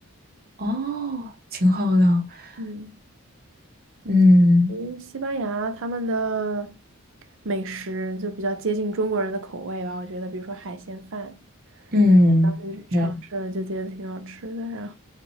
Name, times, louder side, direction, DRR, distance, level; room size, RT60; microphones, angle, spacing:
voice 1, 0.6-2.2 4.0-4.8 11.9-12.5 12.9-13.2, left 1 dB, 45° right, 1.0 m, -18 dB
voice 2, 2.6-3.0 4.7-6.8 7.4-11.4 12.4-14.9, right 2 dB, 60° right, 0.6 m, -30 dB
5.1 x 2.6 x 3.2 m
head